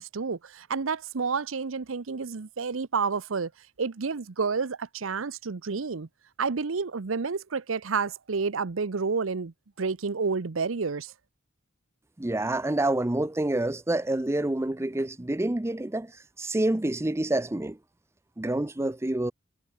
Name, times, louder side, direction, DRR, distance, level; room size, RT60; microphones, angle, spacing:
voice 1, 0.0-3.5 3.8-6.1 6.4-11.1, right 5 dB, 85° right, 0.8 m, -30 dB
voice 2, 12.2-16.1 16.4-17.8 18.4-19.3, right 1 dB, 15° right, 0.5 m, -27 dB
head